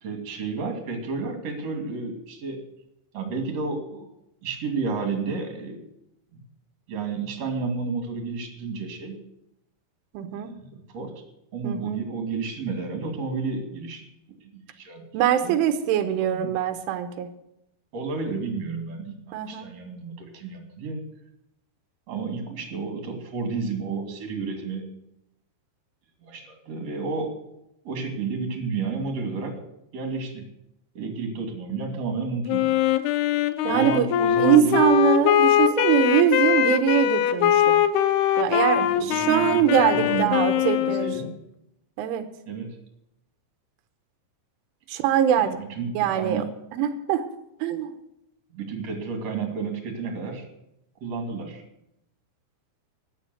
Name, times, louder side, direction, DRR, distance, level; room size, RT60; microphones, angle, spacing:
voice 1, 0.0-2.6 3.1-4.1 4.4-5.8 6.3-6.4 6.9-9.2 10.2-11.1 11.5-14.0 14.3-15.6 15.8-16.5 17.9-21.0 22.1-24.8 26.2-27.3 27.8-29.5 29.9-30.5 30.9-32.7 33.6-34.8 38.8-41.3 42.5-42.8 45.4-46.5 48.5-50.5 51.0-51.6, right 4 dB, 40° right, 4 dB, 3.1 m, -31 dB
voice 2, 10.2-10.5 11.6-12.0 15.1-17.3 19.3-19.7 33.7-34.1 34.4-37.8 38.4-41.3 42.0-42.2 44.9-45.6 46.0-46.4 46.7-47.3 47.6-47.9, right 9 dB, 85° right, 9 dB, 3.4 m, -22 dB
Wind instrument woodwind instrument, 32.5-41.3, left 11 dB, 80° left, 2.4 m, -22 dB
14.0 x 10.0 x 7.8 m, 0.83 s
omnidirectional pair, 5.4 m